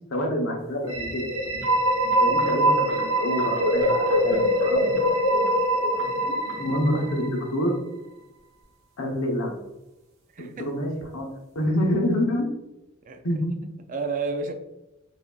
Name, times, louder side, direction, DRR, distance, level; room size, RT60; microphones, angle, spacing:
voice 1, 0.1-1.3 2.2-5.1 6.6-7.8 9.0-9.5 10.4-11.3 11.5-12.5 13.2-13.5, equal, 85° left, 0 dB, 0.9 m, -27 dB
sound 1, 0.8-7.6, equal, 80° right, 1.1 m, -23 dB
voice 2, 10.3-10.7 13.0-13.2 13.6-14.5, right 4 dB, 40° right, 6 dB, 0.4 m, -32 dB
4.8 x 2.7 x 2.3 m, 0.96 s
head